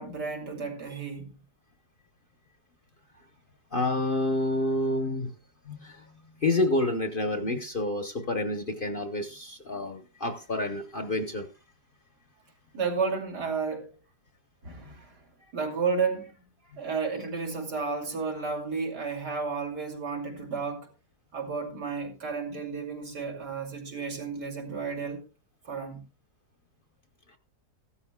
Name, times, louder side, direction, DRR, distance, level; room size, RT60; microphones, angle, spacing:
voice 1, 0.0-1.4 12.7-14.0 14.6-15.2 15.5-16.4 16.6-20.9 21.3-25.2 25.6-26.0, right 5 dB, 75° right, 3.2 m, -32 dB
voice 2, 3.7-5.3 5.6-6.1 6.4-11.5 14.8-14.9 16.7-16.8, left 2 dB, 40° left, 0.9 m, -29 dB
15.5 x 13.0 x 2.3 m
omnidirectional pair, 1.8 m